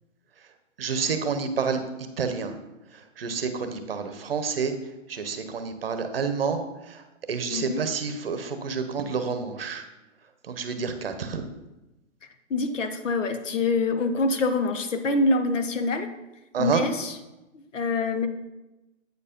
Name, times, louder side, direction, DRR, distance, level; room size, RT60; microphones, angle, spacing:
voice 1, 0.8-1.8 2.2-2.5 3.2-4.7 5.1-6.6 6.9-7.0 7.3-9.8 10.5-11.4 16.5-16.8, right 5 dB, 45° right, 8 dB, 0.8 m, -28 dB
voice 2, 7.5-7.8 12.5-16.1 16.6-17.2 17.5-18.3, left 3 dB, 70° left, 8 dB, 1.0 m, -25 dB
8.1 x 4.6 x 5.1 m, 1.0 s
hypercardioid pair, 175°, 39 cm